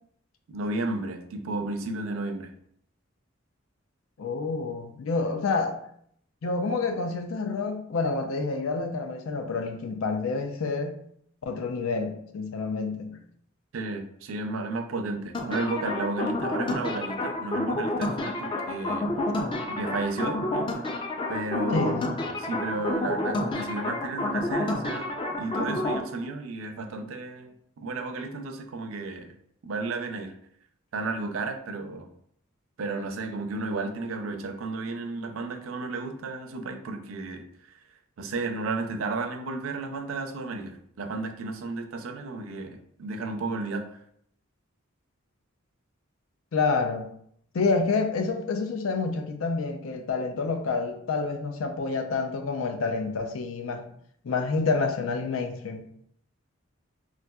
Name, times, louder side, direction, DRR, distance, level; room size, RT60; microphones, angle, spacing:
voice 1, 0.5-2.5 13.7-19.1 19.7-20.9 21.3-21.9 22.3-29.3 29.6-30.3 30.9-32.1 32.8-37.5 38.2-43.9, right 3 dB, 80° right, 6 dB, 0.4 m, -33 dB
voice 2, 4.2-5.8 6.4-11.0 11.4-13.2 19.4-19.6 21.7-22.0 46.5-47.1 47.5-53.8 54.2-55.8, left 4 dB, 85° left, 6 dB, 0.5 m, -28 dB
sound 1, 15.3-26.0, left 2 dB, 25° left, 0.3 m, -29 dB
3.9 x 2.5 x 2.2 m, 0.67 s
head